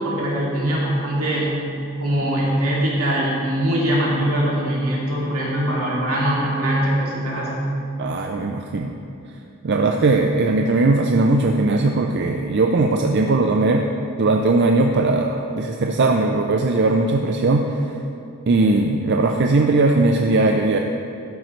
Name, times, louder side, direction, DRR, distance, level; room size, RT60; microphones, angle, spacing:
voice 1, 0.0-1.6 2.0-7.6, right 1 dB, 80° right, -5 dB, 2.5 m, -22 dB
voice 2, 8.0-8.9 9.6-13.9 14.2-17.9 18.5-20.8, right 2 dB, 55° right, 3 dB, 0.5 m, -19 dB
12.0 x 9.2 x 3.2 m, 2.6 s
head